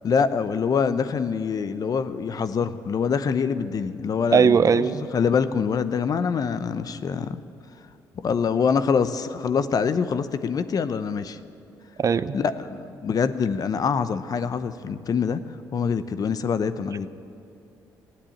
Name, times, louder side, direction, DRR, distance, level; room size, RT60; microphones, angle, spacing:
voice 1, 0.0-4.9 5.1-7.4 8.2-11.4 12.3-15.4 15.7-17.1, left 6 dB, 50° left, 12 dB, 0.8 m, -25 dB
voice 2, 4.3-5.0 12.0-12.3, right 6 dB, 45° right, 15 dB, 0.6 m, -19 dB
16.0 x 9.9 x 8.6 m, 2.5 s
supercardioid pair, 60°, 8 cm